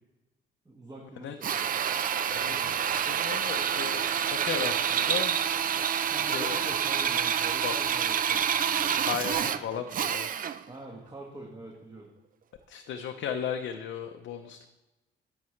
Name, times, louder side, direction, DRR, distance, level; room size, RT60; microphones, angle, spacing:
voice 1, 0.6-1.7 2.5-2.7 6.0-9.0 9.4-9.9 10.7-12.1, right 1 dB, 20° right, -1 dB, 1.4 m, -45 dB
voice 2, 1.2-1.5 2.3-5.4 6.2-6.7 7.6-7.7 9.0-10.3 12.7-14.7, left 8 dB, 70° left, 5 dB, 0.6 m, -36 dB
Drill, 1.4-10.7, right 8 dB, 45° right, 0.4 m, -28 dB
sound 1, 2.3-9.3, left 3 dB, 20° left, 0.9 m, -50 dB
10.5 x 7.4 x 3.2 m, 1.0 s
cardioid pair, 90°, 20 cm